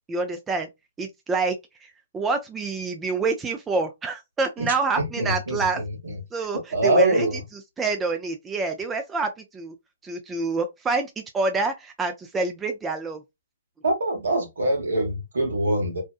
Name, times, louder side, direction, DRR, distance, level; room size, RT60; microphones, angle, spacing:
voice 1, 0.1-0.7 1.0-1.5 1.8-1.9 2.1-5.8 6.3-7.3 7.8-9.7 10.0-13.2, right 3 dB, 15° right, 0.4 m, -27 dB
voice 2, 5.0-6.2 6.7-7.4 13.8-16.0, right 1 dB, 70° right, 1.2 m, -24 dB
2.7 x 2.2 x 2.3 m
figure-of-eight pair, 120°, 0 cm